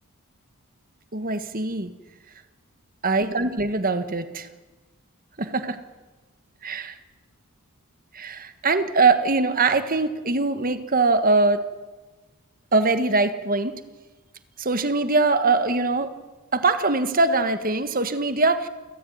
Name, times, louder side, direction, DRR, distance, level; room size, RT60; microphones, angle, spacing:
voice 1, 1.1-1.9 3.0-4.5 5.4-5.8 6.6-7.0 8.1-11.6 12.7-13.7 14.6-16.1 16.5-18.7, right 3 dB, 40° right, 10 dB, 1.6 m, -22 dB
29.0 x 15.0 x 9.4 m, 1.2 s
head